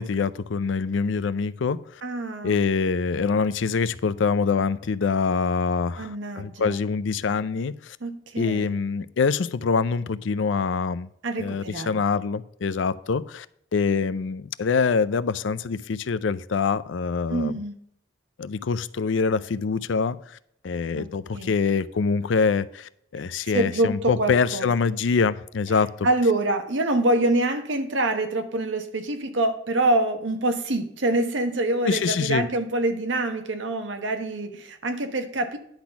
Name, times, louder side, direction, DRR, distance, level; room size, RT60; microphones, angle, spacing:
voice 1, 0.0-1.8 2.4-8.0 8.4-11.1 11.4-13.5 13.7-17.5 18.4-20.2 20.6-26.1 31.8-32.4, left 5 dB, 85° left, 0.5 m, -25 dB
voice 2, 2.0-2.6 6.0-6.8 8.0-8.8 11.2-12.0 17.3-17.7 21.0-21.1 21.3-21.5 23.5-24.7 26.0-35.6, right 2 dB, 85° right, 1.2 m, -25 dB
10.5 x 4.0 x 5.7 m
head